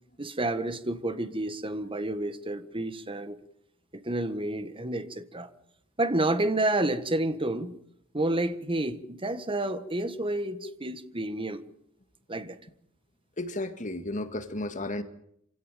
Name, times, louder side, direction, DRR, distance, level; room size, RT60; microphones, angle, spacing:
voice 1, 0.2-3.4 3.9-5.5 6.0-7.8 8.1-11.6 12.3-12.6, right 1 dB, 25° right, 1.6 m, -30 dB
voice 2, 13.4-15.0, left 2 dB, 35° left, 1.9 m, -33 dB
26.5 x 17.0 x 9.1 m
head